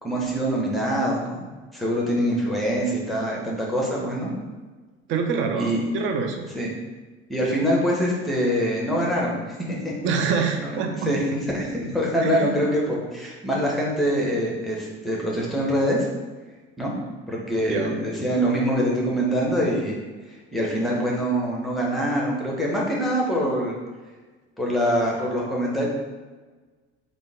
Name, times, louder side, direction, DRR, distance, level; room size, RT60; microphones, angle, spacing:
voice 1, 0.0-1.4 1.7-4.3 5.5-5.8 6.5-6.7 7.3-9.9 10.6-16.1 16.8-16.9 17.3-20.0 20.5-23.8 24.6-25.9, equal, ahead, -4 dB, 1.0 m, -24 dB
voice 2, 5.1-6.4 10.0-10.9 12.2-12.6 17.7-18.0, right 5 dB, 35° right, 4 dB, 0.5 m, -25 dB
3.6 x 2.5 x 3.6 m, 1.3 s
figure-of-eight pair, 60°, 35 cm